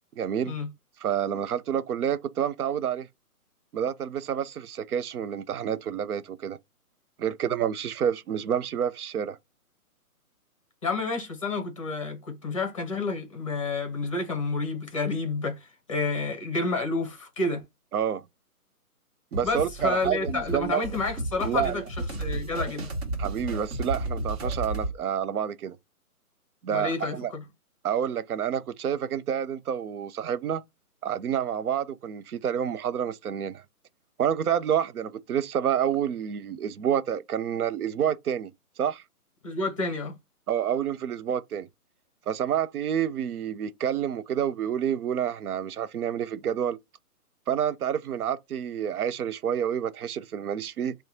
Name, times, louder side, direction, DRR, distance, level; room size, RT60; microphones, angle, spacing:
voice 1, 0.2-0.6 1.0-3.1 3.7-6.6 7.2-9.4 17.9-18.2 19.3-20.8 21.4-21.8 23.2-25.8 26.6-27.3 27.8-30.6 31.0-33.6 34.2-38.5 38.8-39.0 40.5-41.7 42.3-46.8 47.5-51.0, right 9 dB, 70° right, 0.6 m, -28 dB
voice 2, 10.8-17.6 19.4-22.9 26.7-27.4 39.4-40.2, left 3 dB, 20° left, 0.7 m, -30 dB
sound 1, 19.3-24.9, right 2 dB, 45° right, 1.3 m, -33 dB
2.9 x 2.2 x 3.7 m
hypercardioid pair, 165°, 46 cm